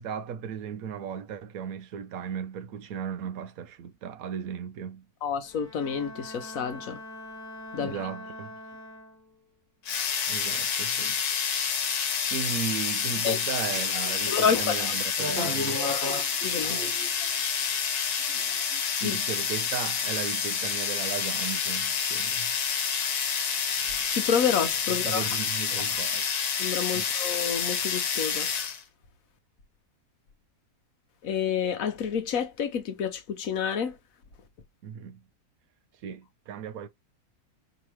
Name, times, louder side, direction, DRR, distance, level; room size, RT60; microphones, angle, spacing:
voice 1, 0.0-5.1 7.8-8.5 10.3-11.2 12.3-16.0 19.0-22.5 24.9-26.2 26.9-27.1 34.8-35.2 36.0-36.9, right 7 dB, 70° right, 1.1 m, -36 dB
voice 2, 5.2-7.0 7.7-8.1 13.2-13.4 14.2-14.9 16.4-16.8 19.0-19.2 23.8-25.3 25.7-26.0 26.6-28.5 31.2-34.0, left 7 dB, 65° left, 1.2 m, -29 dB
Bowed string instrument, 5.4-9.5, left 1 dB, 15° right, 0.9 m, -43 dB
sound 1, 9.9-28.8, left 6 dB, 80° left, 1.4 m, -28 dB
sound 2, 13.7-14.1 14.6-17.3 18.2-19.0, left 1 dB, 35° right, 2.1 m, -34 dB
5.0 x 3.0 x 3.0 m
omnidirectional pair, 1.6 m